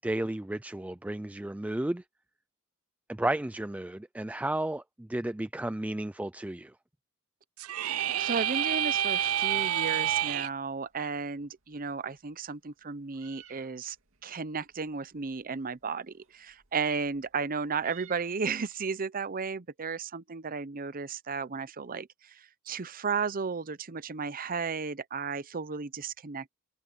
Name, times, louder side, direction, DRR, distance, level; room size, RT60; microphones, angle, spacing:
voice 1, 0.0-2.0 3.1-6.7, right 1 dB, 5° right, 0.4 m, -33 dB
sound 1, 7.6-10.5, right 11 dB, 85° right, 0.6 m, -28 dB
voice 2, 7.8-14.0 14.2-26.5, right 5 dB, 40° right, 0.8 m, -34 dB
Meow, 8.8-18.9, right 10 dB, 70° right, 2.5 m, -59 dB
open air
head